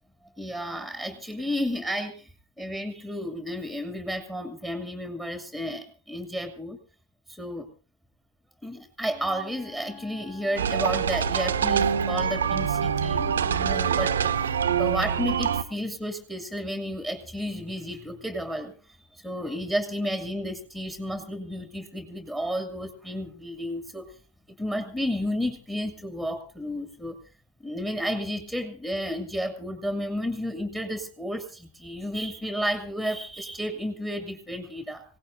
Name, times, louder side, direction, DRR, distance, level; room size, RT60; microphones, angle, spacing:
voice 1, 0.4-2.3 2.6-6.8 7.3-7.7 8.6-24.0 24.6-27.2 27.6-35.0, equal, 5° left, 6 dB, 2.2 m, -32 dB
Wind instrument woodwind instrument, 9.0-15.1, left 7 dB, 30° left, 3.5 m, -47 dB
sound 1, 10.6-15.6, right 7 dB, 65° right, 1.0 m, -25 dB
26.0 x 17.5 x 2.6 m, 0.36 s
figure-of-eight pair, 90°, 0 cm